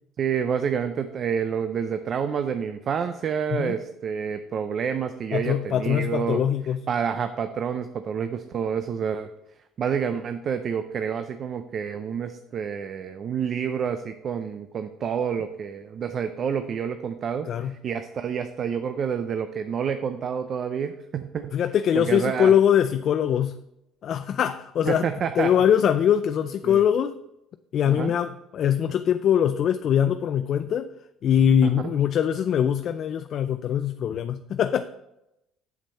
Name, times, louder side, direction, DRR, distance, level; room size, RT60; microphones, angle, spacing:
voice 1, 0.2-6.4 6.9-9.3 9.8-21.5 21.9-22.5 24.9-25.5 26.6-26.8 27.9-28.1 31.6-31.7, right 7 dB, 50° right, 0.5 m, -28 dB
voice 2, 5.3-6.8 17.5-17.7 21.5-23.6 24.0-25.1 25.4-27.1 27.7-30.9 31.2-34.9, left 9 dB, 55° left, 0.3 m, -22 dB
7.4 x 7.2 x 4.2 m
supercardioid pair, 95°, 0 cm